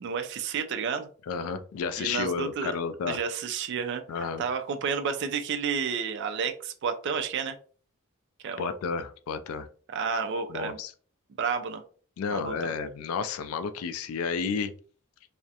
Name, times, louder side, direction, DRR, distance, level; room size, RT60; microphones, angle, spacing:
voice 1, 0.0-1.1 2.0-2.7 3.0-7.6 8.4-8.7 9.9-10.8 11.4-11.8 12.3-12.7, right 6 dB, 55° right, 7 dB, 0.3 m, -31 dB
voice 2, 1.3-3.2 4.1-4.4 8.6-9.7 10.5-10.9 12.2-14.7, left 5 dB, 90° left, 10 dB, 0.3 m, -31 dB
2.4 x 2.0 x 2.7 m, 0.42 s
head